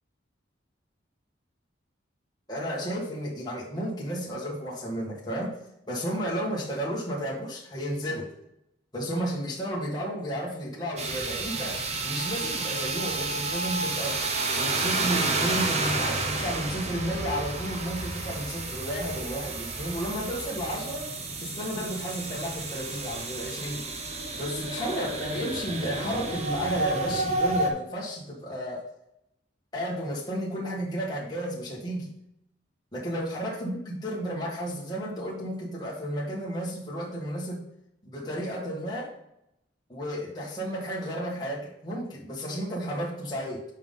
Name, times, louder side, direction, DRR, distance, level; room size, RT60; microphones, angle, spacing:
voice 1, 2.5-5.6 5.9-8.3 8.9-14.2 14.5-21.1 21.4-23.8 24.3-28.9 29.7-32.1 32.9-37.6 38.0-39.1 39.9-43.6, equal, 20° left, -5 dB, 1.8 m, -32 dB
sound 1, 11.0-27.7, right 3 dB, 35° right, 0.9 m, -31 dB
7.5 x 5.4 x 3.8 m, 0.82 s
head